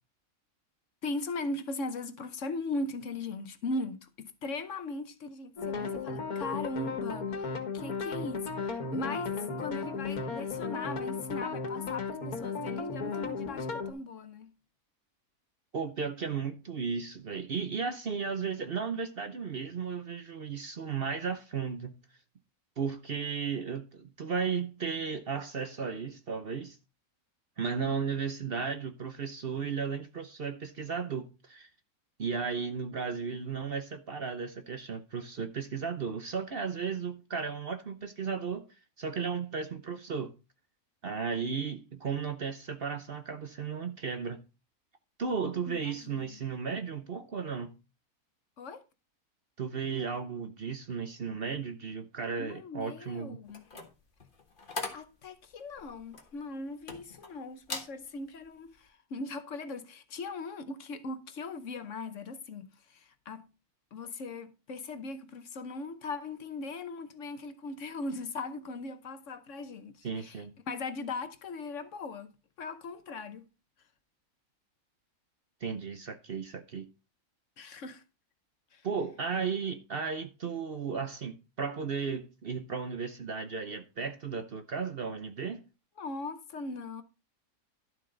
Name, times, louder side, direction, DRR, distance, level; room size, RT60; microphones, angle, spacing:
voice 1, 1.0-14.5 27.8-28.1 45.7-45.8 46.2-46.4 48.6-48.8 52.4-53.7 54.9-63.5 63.9-72.3 72.6-73.4 77.6-78.0 78.7-78.8 86.0-87.0, left 3 dB, 60° left, 1.2 m, -39 dB
sound 1, 5.6-13.9, left 4 dB, 80° left, 2.1 m, -35 dB
voice 2, 15.7-21.9 22.8-26.8 27.6-31.7 32.2-38.7 39.0-40.3 41.0-44.4 45.2-47.7 49.6-53.4 70.0-70.6 75.6-76.9 78.8-85.6, right 5 dB, 50° right, 0.9 m, -35 dB
sound 2, 53.5-57.3 57.6-57.9 58.4-58.7, left 3 dB, 35° left, 1.6 m, -41 dB
11.5 x 7.3 x 3.9 m
omnidirectional pair, 1.5 m